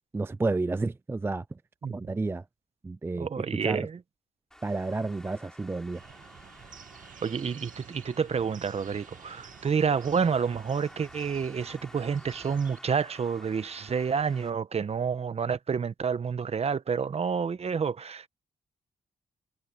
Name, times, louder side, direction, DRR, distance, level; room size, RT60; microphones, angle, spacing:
voice 1, 0.1-1.4 1.9-2.4 2.8-3.3 3.6-3.9 4.6-6.0, right 3 dB, 15° right, 0.4 m, -30 dB
voice 2, 3.2-4.0 7.2-18.3, right 6 dB, 45° right, 1.1 m, -29 dB
Traffic noise roadway noise, 4.5-14.5, equal, 5° left, 4.1 m, -52 dB
sound 1, 5.9-12.8, right 8 dB, 65° right, 2.2 m, -50 dB
cardioid pair, 75°, 14 cm